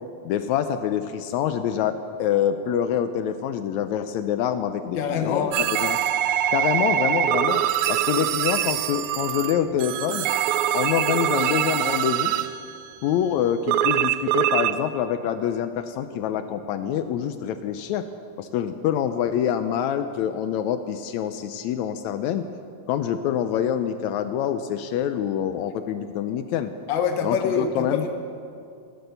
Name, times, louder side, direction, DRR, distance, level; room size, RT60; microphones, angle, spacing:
voice 1, 0.3-5.5 5.8-6.0 6.5-7.6 7.9-10.3 10.7-12.4 13.0-18.1 18.4-22.5 22.9-26.7 27.2-28.0, left 9 dB, 80° left, 9 dB, 1.9 m, -26 dB
voice 2, 5.0-5.5 26.9-28.1, left 6 dB, 55° left, 5 dB, 1.5 m, -25 dB
sound 1, 5.5-12.7 13.7-14.8, right 11 dB, 80° right, 1.9 m, -24 dB
17.0 x 11.5 x 6.7 m, 2.4 s
omnidirectional pair, 3.3 m